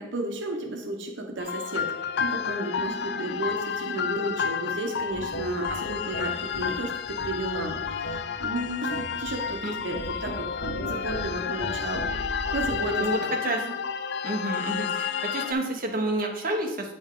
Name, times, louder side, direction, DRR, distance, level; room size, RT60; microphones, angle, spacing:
voice 1, 0.0-1.9 2.2-12.1 12.5-13.3 13.6-13.7, right 1 dB, 85° right, 3 dB, 0.9 m, -33 dB
sound 1, 1.4-15.5, left 7 dB, 60° left, 0.3 m, -31 dB
sound 2, 5.1-13.0, equal, 85° left, 1.1 m, -37 dB
voice 2, 13.0-13.6 14.2-16.9, right 2 dB, 50° right, 1 dB, 1.1 m, -29 dB
8.2 x 5.2 x 3.8 m, 0.88 s
head